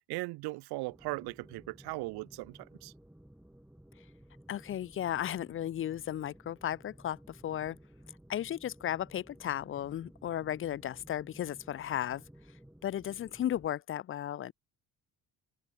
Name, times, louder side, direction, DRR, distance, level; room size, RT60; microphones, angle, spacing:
voice 1, 0.1-2.9, right 23 dB, 90° right, 0.7 m, -38 dB
sound 1, 0.9-13.7, right 1 dB, 5° right, 4.6 m, -56 dB
voice 2, 4.5-7.8 8.3-12.2 12.8-14.5, left 11 dB, 35° left, 0.5 m, -35 dB
cardioid pair, 135°, 38 cm